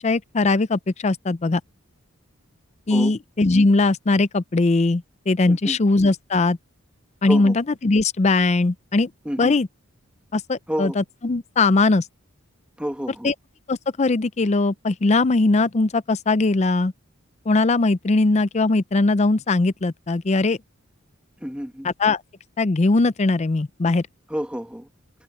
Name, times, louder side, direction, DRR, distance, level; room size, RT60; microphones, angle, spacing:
voice 1, 0.0-1.6 2.9-6.6 7.2-9.1 9.4-9.7 10.3-12.1 13.2-13.3 13.7-16.9 17.5-20.6 21.8-22.2 22.6-24.0, left 3 dB, 30° left, 0.5 m, -20 dB
voice 2, 5.5-5.8 7.3-7.6 9.2-9.5 10.7-11.0 12.8-13.3 21.4-21.9 24.3-24.9, equal, 5° right, 1.5 m, -29 dB
head